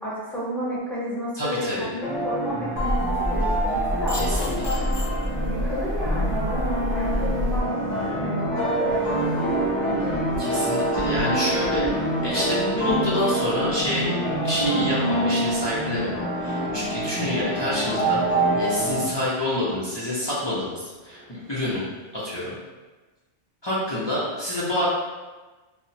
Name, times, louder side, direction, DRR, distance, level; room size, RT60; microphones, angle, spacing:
voice 1, 0.0-4.8 5.4-7.7 8.1-10.2, equal, ahead, -9 dB, 0.7 m, -32 dB
voice 2, 1.4-1.9 4.1-4.6 10.4-11.9 12.2-21.9 22.1-22.5 23.6-24.9, left 1 dB, 35° left, -8 dB, 0.4 m, -27 dB
sound 1, 2.0-19.0, right 1 dB, 80° left, 1.1 m, -26 dB
sound 2, 2.8-7.6, left 1 dB, 50° left, 0.8 m, -27 dB
sound 3, 3.2-22.3, right 1 dB, 60° right, 0.4 m, -43 dB
3.5 x 2.0 x 2.7 m, 1.2 s
omnidirectional pair, 1.2 m